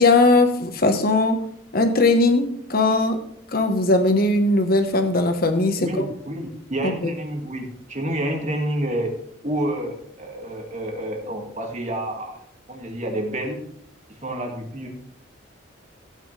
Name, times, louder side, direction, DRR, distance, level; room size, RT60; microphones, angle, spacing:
voice 1, 0.0-1.4 1.7-2.4 2.7-3.2 3.5-6.0 6.8-7.1, left 2 dB, 50° left, 7 dB, 1.3 m, -19 dB
voice 2, 5.8-9.2 9.4-12.4 12.7-13.6 14.1-14.9, right 1 dB, 40° right, 2 dB, 2.1 m, -29 dB
15.0 x 9.0 x 3.4 m, 0.70 s
head